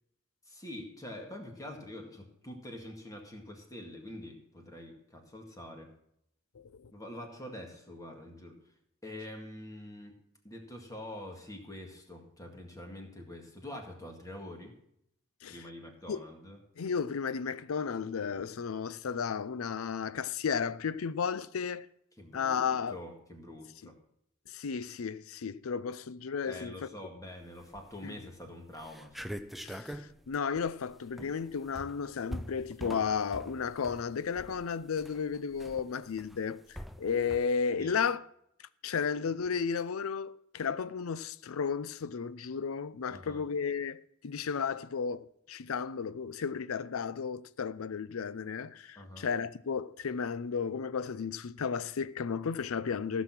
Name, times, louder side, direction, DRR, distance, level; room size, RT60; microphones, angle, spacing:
voice 1, 0.5-5.9 6.9-8.6 9.0-10.2 10.4-14.7 15.5-16.6 22.2-24.0 26.5-29.3 37.8-38.0 43.1-43.4 49.0-49.3, left 1 dB, 15° left, 1.9 m, -45 dB
voice 2, 6.5-6.9 15.4-15.6 16.1-16.2 16.8-21.9 22.3-23.0 24.5-26.8 28.0-28.2 29.6-38.2 38.8-53.2, left 6 dB, 85° left, 0.5 m, -33 dB
sound 1, 27.6-28.1 28.5-28.6 28.8-37.4, equal, ahead, 0.5 m, -44 dB
15.0 x 6.2 x 5.9 m
head